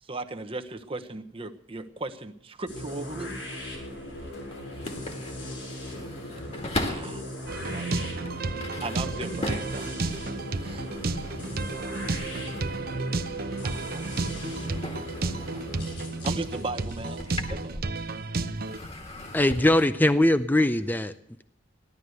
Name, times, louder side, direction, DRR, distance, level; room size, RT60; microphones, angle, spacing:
voice 1, 0.0-3.4 6.8-7.2 7.7-8.3 8.6-9.9 10.6-10.8 12.0-12.1 13.6-14.3 16.2-17.2 17.5-17.9, right 2 dB, 30° right, 7 dB, 1.0 m, -37 dB
sound 1, 2.7-18.5, left 1 dB, 70° left, 7.0 m, -39 dB
sound 2, 3.3-7.3 7.9-13.1 13.4-18.2 18.6-19.9, left 1 dB, 35° left, 1.9 m, -39 dB
voice 2, 6.0-9.4 11.1-11.4 16.7-16.8 17.1-17.3, equal, 85° left, -1 dB, 7.0 m, -52 dB
sound 3, 7.5-18.8, right 3 dB, 50° right, 0.8 m, -32 dB
voice 3, 19.3-21.1, left 1 dB, 10° left, 11 dB, 0.5 m, -21 dB
15.0 x 11.5 x 8.0 m, 0.71 s
head